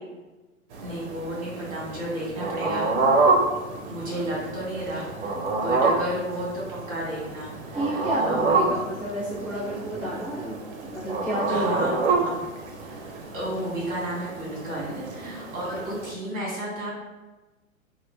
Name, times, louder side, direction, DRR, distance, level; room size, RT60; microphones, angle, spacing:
sound 1, 0.7-16.1, right 3 dB, 55° right, 0.6 m, -28 dB
voice 1, 0.8-3.3 3.9-8.7 11.5-12.4 12.8-16.9, right 1 dB, 20° right, -6 dB, 1.4 m, -33 dB
voice 2, 7.7-12.2, right 1 dB, 5° left, -14 dB, 0.4 m, -31 dB
4.1 x 2.4 x 2.2 m, 1.2 s
figure-of-eight pair, 115°, 42 cm